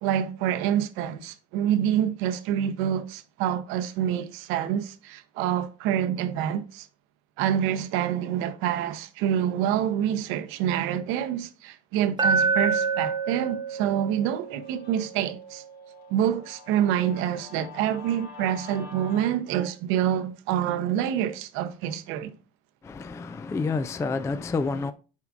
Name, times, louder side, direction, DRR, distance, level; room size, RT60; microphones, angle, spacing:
voice 1, 0.0-6.9 7.4-15.6 16.1-22.3, right 10 dB, 75° right, 0.8 m, -27 dB
Glass, 12.2-16.3, right 4 dB, 20° right, 0.8 m, -28 dB
Guitar, 13.8-19.4, left 6 dB, 75° left, 3.3 m, -47 dB
voice 2, 22.8-24.9, left 4 dB, 15° left, 0.3 m, -29 dB
8.3 x 4.7 x 2.5 m
supercardioid pair, 100°, 21 cm